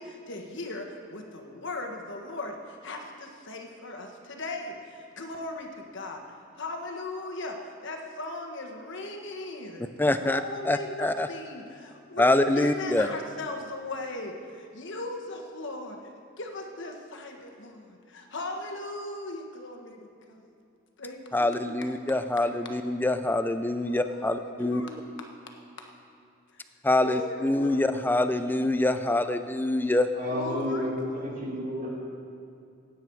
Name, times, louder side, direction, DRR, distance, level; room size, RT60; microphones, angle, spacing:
voice 1, 0.0-6.2 6.5-9.9 10.2-16.1 16.4-20.5 21.0-21.8 23.8-25.9 27.0-27.9 30.2-31.2, left 2 dB, 60° left, 3 dB, 1.4 m, -38 dB
voice 2, 10.0-10.4 10.7-11.3 12.2-13.1 21.3-24.8 26.8-30.1, left 2 dB, 10° left, 10 dB, 0.4 m, -25 dB
voice 3, 30.1-31.9, left 1 dB, 40° right, -5 dB, 3.1 m, -31 dB
16.5 x 9.2 x 4.7 m, 2.5 s
head